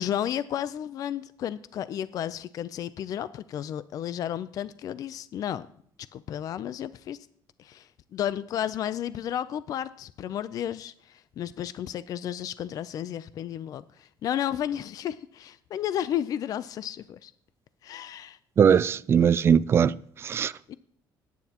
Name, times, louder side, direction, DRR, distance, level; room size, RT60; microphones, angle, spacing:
voice 1, 0.0-5.7 6.1-7.2 7.6-17.3 17.8-18.4 18.7-18.8 20.7-20.8, left 10 dB, 55° left, 0.4 m, -33 dB
voice 2, 18.6-19.9 20.2-20.5, right 7 dB, 35° right, 0.3 m, -20 dB
18.5 x 9.4 x 2.9 m
cardioid pair, 140°, 8 cm